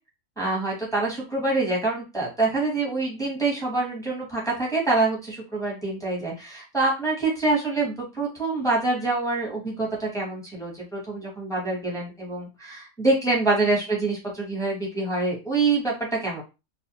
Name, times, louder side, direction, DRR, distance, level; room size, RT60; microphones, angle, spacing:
voice 1, 0.4-16.4, right 3 dB, 5° left, -4 dB, 0.8 m, -26 dB
2.4 x 2.3 x 2.8 m, 0.28 s
omnidirectional pair, 1.5 m